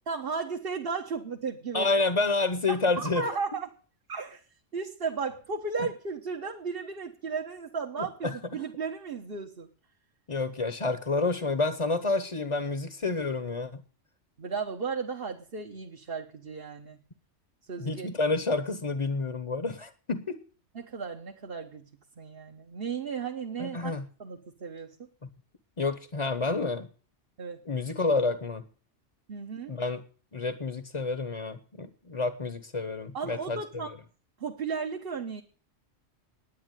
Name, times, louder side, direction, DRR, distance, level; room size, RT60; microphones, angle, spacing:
voice 1, 0.1-1.9 2.7-3.7 4.1-4.4 4.7-9.7 14.4-17.0 17.7-18.1 20.7-21.8 22.2-23.9 24.2-24.9 27.4-27.6 29.3-29.7 33.1-33.9 34.4-35.4, right 5 dB, 50° right, 2 dB, 1.4 m, -35 dB
voice 2, 1.7-3.2 5.8-5.9 8.0-8.4 10.3-13.8 17.8-20.4 23.6-24.1 25.8-26.9 27.6-28.7 29.7-30.0 30.3-33.8, left 3 dB, 30° left, 10 dB, 1.0 m, -29 dB
11.0 x 9.7 x 9.1 m, 0.41 s
omnidirectional pair, 1.3 m